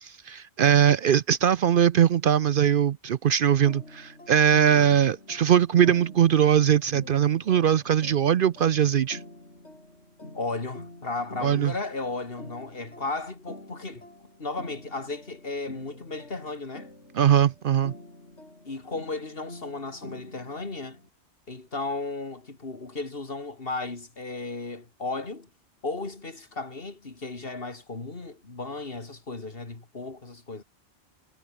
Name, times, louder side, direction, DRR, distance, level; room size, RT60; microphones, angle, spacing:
voice 1, 0.0-9.2 11.4-11.7 17.1-17.9, right 9 dB, 60° right, 0.7 m, -21 dB
sound 1, 3.6-21.1, left 1 dB, 90° left, 7.3 m, -47 dB
voice 2, 4.5-4.9 10.3-14.1 14.4-16.9 18.6-21.0 21.5-25.5 25.8-30.6, left 3 dB, 55° left, 2.9 m, -35 dB
omnidirectional pair, 1.1 m